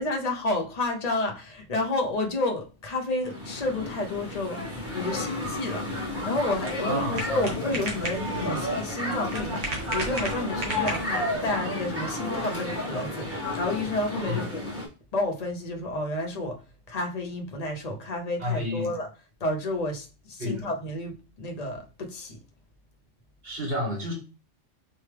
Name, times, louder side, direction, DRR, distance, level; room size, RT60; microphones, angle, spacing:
voice 1, 0.0-4.6 4.9-5.9 6.2-14.6 15.1-16.6 16.9-19.1 19.4-22.4, left 2 dB, 40° left, 0.7 m, -30 dB
sound 1, 3.2-14.9, left 1 dB, 10° right, 1.3 m, -32 dB
sound 2, 5.0-5.8 6.3-6.4 6.9-7.0 7.2-7.3 7.5-9.6 10.0-10.4 11.3-12.1 12.5-13.0 13.5-13.7, left 3 dB, 75° left, 1.1 m, -44 dB
sound 3, 5.8-11.4, right 2 dB, 85° right, 1.5 m, -36 dB
voice 2, 6.8-7.5 14.3-14.4 18.4-18.9 20.4-20.7 23.4-24.1, left 1 dB, 50° right, 1.8 m, -30 dB
4.1 x 3.4 x 3.3 m
omnidirectional pair, 1.2 m